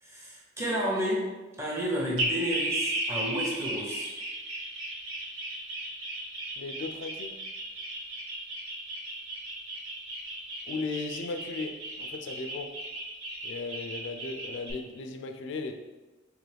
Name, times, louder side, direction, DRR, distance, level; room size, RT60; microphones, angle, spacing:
voice 1, 0.0-1.2 1.6-4.1, equal, 15° right, -4 dB, 0.7 m, -31 dB
sound 1, 2.2-14.7, right 1 dB, 90° right, 1.0 m, -35 dB
voice 2, 6.6-7.4 10.7-12.8 13.4-15.7, left 3 dB, 65° left, 6 dB, 0.3 m, -36 dB
3.8 x 3.0 x 3.3 m, 1.2 s
head